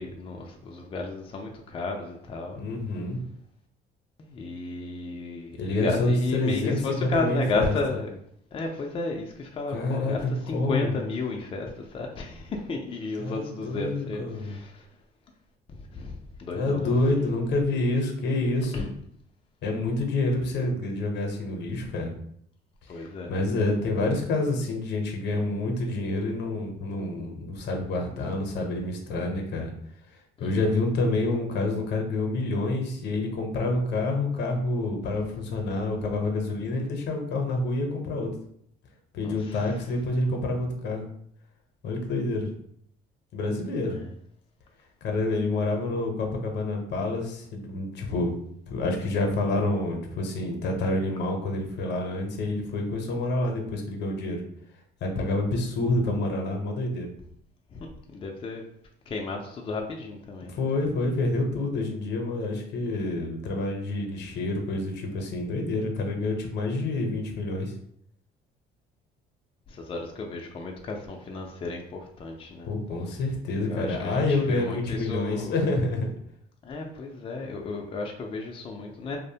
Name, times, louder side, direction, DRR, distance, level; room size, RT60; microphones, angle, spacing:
voice 1, 0.0-2.6 4.2-8.2 8.5-14.9 15.7-17.2 18.7-18.9 22.9-23.5 30.4-30.6 39.2-39.9 43.8-44.1 57.7-58.6 59.1-60.5 69.7-72.7 73.7-75.7 76.6-79.2, left 3 dB, 30° left, 1 dB, 0.4 m, -33 dB
voice 2, 2.6-3.2 5.6-7.7 9.7-10.9 13.2-14.6 16.5-18.8 19.6-22.1 22.9-29.7 30.4-38.3 39.1-41.1 41.8-42.5 43.3-44.0 45.0-48.4 48.7-54.4 55.0-57.1 60.5-67.7 72.6-76.1, left 2 dB, 65° left, 2 dB, 0.6 m, -28 dB
2.5 x 2.0 x 2.7 m, 0.68 s
cardioid pair, 100°, 19 cm